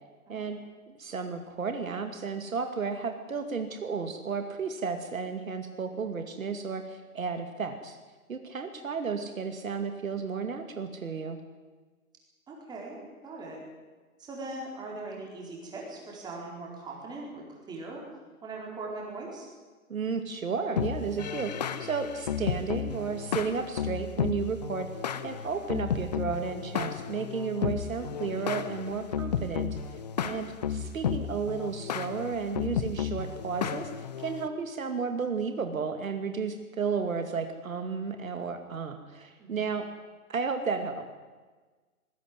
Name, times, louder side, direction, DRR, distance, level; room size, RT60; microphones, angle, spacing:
voice 1, 0.9-8.0 8.3-11.4 19.9-24.9 25.2-29.8 30.2-33.9 34.2-39.9 40.3-41.1, right 5 dB, 65° right, 7 dB, 2.4 m, -33 dB
voice 2, 12.5-13.0 13.2-13.6 14.2-18.0 18.4-19.5 30.2-30.4 39.4-39.6, right 2 dB, 10° right, -2 dB, 4.5 m, -40 dB
sound 1, 20.8-34.5, left 7 dB, 30° left, 0.8 m, -33 dB
20.0 x 15.5 x 9.8 m, 1.3 s
figure-of-eight pair, 145°, 44 cm